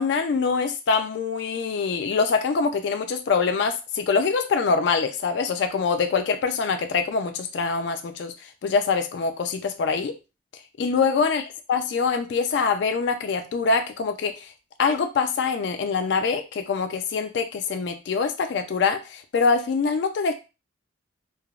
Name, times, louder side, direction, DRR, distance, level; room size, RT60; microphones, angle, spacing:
voice 1, 0.0-10.1 10.8-11.4 11.7-14.5 14.8-20.3, left 5 dB, 60° left, 6 dB, 0.3 m, -24 dB
3.3 x 2.0 x 2.3 m, 0.29 s
head